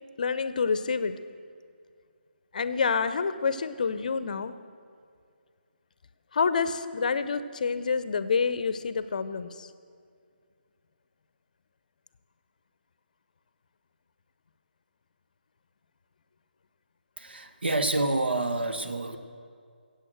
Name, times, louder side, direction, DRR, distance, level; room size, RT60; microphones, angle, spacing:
voice 1, 0.2-1.2 2.5-4.5 6.3-9.7, left 5 dB, 45° left, 13 dB, 0.6 m, -28 dB
voice 2, 17.2-19.2, right 2 dB, 70° right, 9 dB, 1.2 m, -28 dB
14.0 x 8.3 x 7.7 m, 2.2 s
figure-of-eight pair, 150°, 6 cm